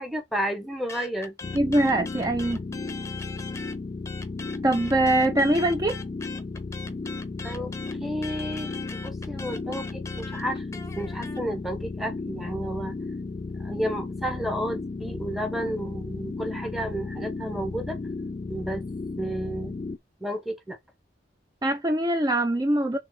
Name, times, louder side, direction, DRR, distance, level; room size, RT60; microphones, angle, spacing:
voice 1, 0.0-1.3 6.9-7.0 7.4-7.7 8.0-13.0 13.6-18.0 18.5-18.9 19.2-19.8 20.2-20.8, equal, ahead, 1.3 m, -32 dB
sound 1, 0.9-3.8 4.0-11.4, left 4 dB, 15° left, 0.9 m, -41 dB
sound 2, 1.4-20.0, left 3 dB, 30° left, 0.3 m, -34 dB
voice 2, 1.5-2.6 4.6-6.0 21.6-23.0, right 1 dB, 20° right, 0.6 m, -23 dB
5.7 x 3.6 x 4.9 m
head